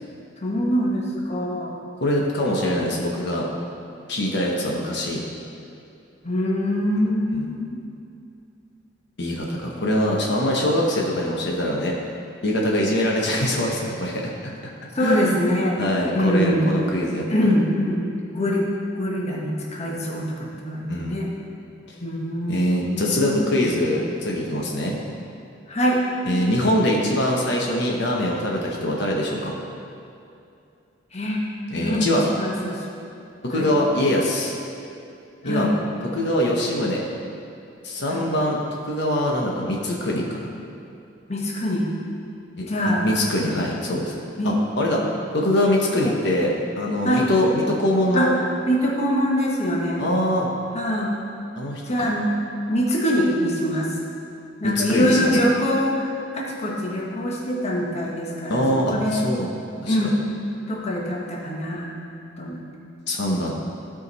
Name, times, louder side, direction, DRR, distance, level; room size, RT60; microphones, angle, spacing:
voice 1, 0.4-1.8 2.5-2.8 6.2-7.8 14.9-15.7 16.1-16.7 17.3-18.0 18.3-18.6 19.0-21.3 22.0-23.5 25.7-26.0 31.1-31.4 31.8-32.8 33.6-33.7 35.4-35.7 38.1-38.3 41.3-41.8 42.7-43.1 44.4-44.6 45.0-45.1 46.0-46.1 47.0-47.3 48.1-48.3 48.7-50.0 50.7-51.2 51.9-52.3 52.7-53.9 54.6-59.3 59.9-60.1 60.7-61.9 62.4-62.6, equal, 35° left, -3 dB, 1.2 m, -24 dB
voice 2, 2.0-3.5 4.1-5.2 7.3-7.5 9.2-12.0 12.4-14.5 15.0-15.4 15.8-17.5 20.9-21.2 22.5-25.0 26.2-29.5 31.7-32.3 33.4-34.5 35.4-35.7 36.1-37.0 37.8-40.5 42.6-44.1 44.4-45.0 45.3-48.3 50.0-50.5 51.6-52.1 54.6-55.4 58.5-59.5 59.8-60.0 63.1-63.5, left 1 dB, 60° left, -2 dB, 1.1 m, -23 dB
15.0 x 5.1 x 4.1 m, 2.6 s
head